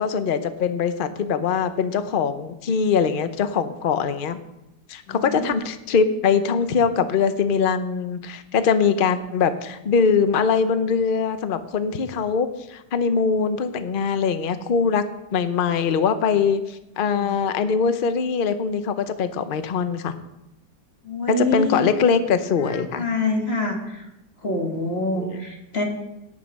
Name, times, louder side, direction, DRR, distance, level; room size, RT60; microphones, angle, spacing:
voice 1, 0.0-4.4 4.9-15.0 15.3-20.1 21.3-23.0 25.2-25.4, left 6 dB, 60° left, 10 dB, 0.5 m, -22 dB
voice 2, 5.1-5.4 17.1-17.3 21.1-21.9 22.9-23.8 24.4-25.8, left 2 dB, 35° left, 1 dB, 2.2 m, -25 dB
17.5 x 6.6 x 5.4 m, 0.91 s
omnidirectional pair, 2.0 m